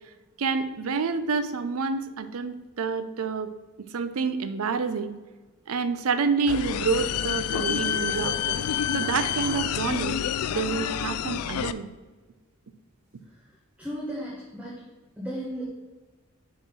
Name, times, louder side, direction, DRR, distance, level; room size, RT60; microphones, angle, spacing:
voice 1, 0.4-3.5 3.9-5.1 5.7-8.6 8.9-10.2 10.5-11.9, right 5 dB, 75° right, 11 dB, 0.5 m, -28 dB
sound 1, 6.5-11.7, left 9 dB, 85° left, 0.3 m, -28 dB
voice 2, 13.8-14.8 15.2-15.6, equal, 5° right, -8 dB, 1.4 m, -34 dB
7.2 x 3.7 x 5.9 m, 1.3 s
head